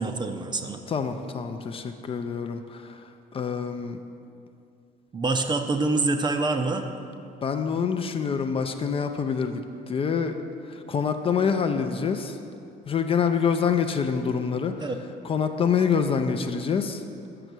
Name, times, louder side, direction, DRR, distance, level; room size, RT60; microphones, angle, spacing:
voice 1, 0.0-0.8 5.1-6.9 14.8-15.0, right 3 dB, 25° right, 6 dB, 0.6 m, -26 dB
voice 2, 0.9-4.0 7.4-10.4 10.7-12.4 12.9-14.9 15.2-17.0, left 6 dB, 35° left, 7 dB, 0.4 m, -26 dB
6.8 x 6.2 x 6.0 m, 2.5 s
cardioid pair, 110°, 17 cm